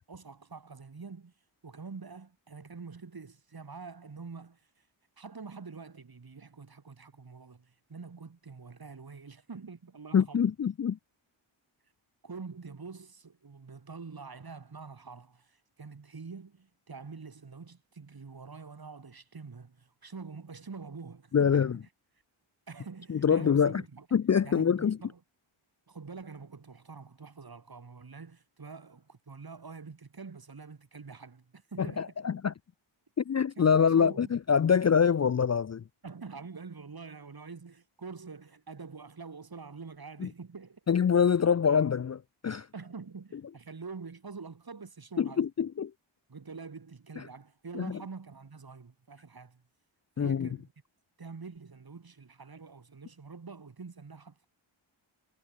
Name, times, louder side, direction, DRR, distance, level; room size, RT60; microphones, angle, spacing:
voice 1, 0.1-1.3 1.6-4.9 5.2-10.4 12.2-21.8 22.7-24.1 24.4-25.2 25.9-32.1 33.6-33.7 34.0-34.3 36.0-40.8 42.7-45.5 46.3-49.6 50.2-50.7 51.2-54.5, right 4 dB, 50° right, 3.2 m, -46 dB
voice 2, 10.1-11.0 21.3-21.8 23.1-23.8 24.1-25.0 31.8-32.5 33.2-35.8 40.2-40.3 40.9-42.7 45.2-45.9 47.7-48.0 50.2-50.5, left 7 dB, 35° left, 0.4 m, -25 dB
wide cardioid pair, 95°, 48 cm